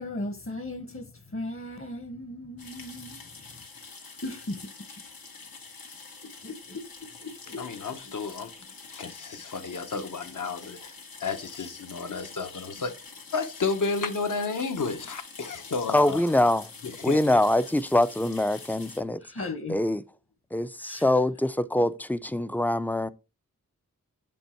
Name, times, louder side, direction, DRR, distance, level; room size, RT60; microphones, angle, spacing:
voice 1, 0.0-3.2 4.2-4.7 6.4-6.8 7.2-7.6 19.3-19.8 20.8-21.0, left 2 dB, 40° left, 1.1 m, -36 dB
sound 1, 2.6-19.0, left 4 dB, 90° left, 1.9 m, -46 dB
voice 2, 7.6-8.6 8.9-16.2 16.8-17.4, left 4 dB, 65° left, 1.0 m, -32 dB
voice 3, 15.9-16.7 17.0-19.2 19.7-20.0 20.5-23.1, left 1 dB, 5° left, 0.4 m, -24 dB
6.9 x 5.4 x 4.4 m
wide cardioid pair, 80°, 34 cm